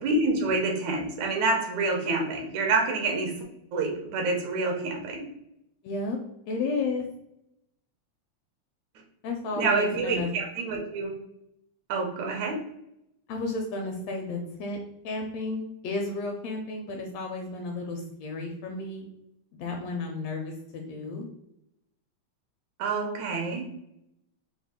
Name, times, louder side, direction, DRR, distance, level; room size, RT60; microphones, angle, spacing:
voice 1, 0.0-3.3 3.7-5.2 9.6-11.1 11.9-12.5 22.8-23.6, right 3 dB, 80° right, 1 dB, 2.1 m, -27 dB
voice 2, 5.8-6.2 6.5-7.0 9.2-10.3 13.3-14.8 15.0-19.1 19.5-21.3, left 3 dB, 80° left, 2 dB, 1.5 m, -32 dB
5.2 x 2.0 x 3.5 m, 0.81 s
omnidirectional pair, 3.3 m